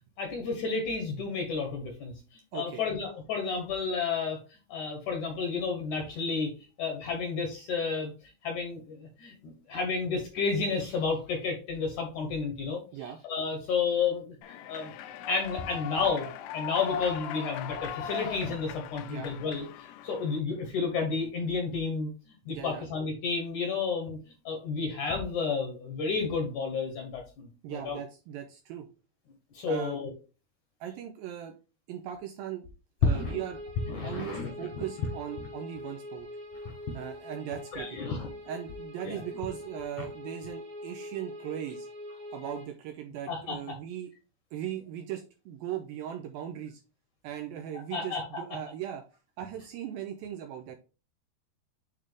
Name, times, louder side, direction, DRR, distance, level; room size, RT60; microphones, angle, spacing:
voice 1, 0.2-6.5 6.8-8.1 8.4-12.8 13.2-14.9 15.3-16.3 16.5-24.2 24.5-28.0 29.5-30.1 33.0-33.4 33.9-34.5 36.6-36.7 37.7-38.3 39.0-39.2 43.3-43.6 47.9-48.4, left 4 dB, 65° left, 3 dB, 2.0 m, -31 dB
voice 2, 2.5-2.9 12.9-13.2 19.0-19.3 22.5-22.9 27.6-28.9 29.7-30.0 30.8-31.6 31.9-32.7 33.0-33.6 34.0-36.3 36.9-38.0 38.5-41.9 42.3-44.1 44.5-46.8 47.2-49.0 49.4-50.8, right 10 dB, 80° right, 5 dB, 2.1 m, -38 dB
Human voice / Clapping / Cheering, 14.4-20.4, left 8 dB, 85° left, 2.8 m, -39 dB
sound 1, 33.1-42.7, left 1 dB, 55° right, 1.6 m, -43 dB
8.6 x 3.7 x 3.4 m, 0.33 s
omnidirectional pair, 4.8 m